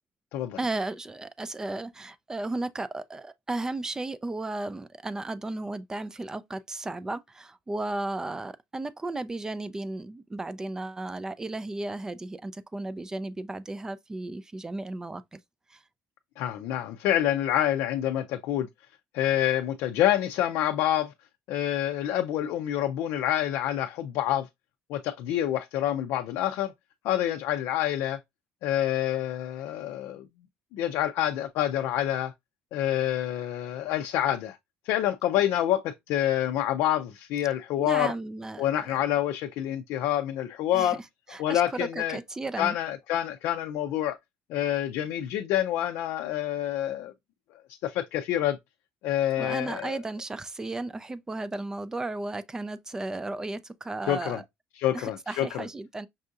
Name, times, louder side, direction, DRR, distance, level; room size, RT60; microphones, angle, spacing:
voice 1, 0.6-15.4 15.7-15.8 37.8-39.0 40.7-41.0 41.3-42.8 49.4-54.4 54.9-56.1, right 2 dB, 15° right, 0.3 m, -34 dB
voice 2, 16.4-18.7 19.1-21.1 21.5-24.5 24.9-26.7 27.0-28.2 28.6-30.3 30.7-32.3 32.7-34.6 34.8-38.1 38.6-41.0 41.4-42.2 42.6-44.2 44.5-47.1 47.8-48.6 49.0-50.0 54.1-54.4 54.8-55.7, left 12 dB, 75° left, 0.4 m, -27 dB
5.4 x 2.6 x 2.4 m
cardioid pair, 125°, 4 cm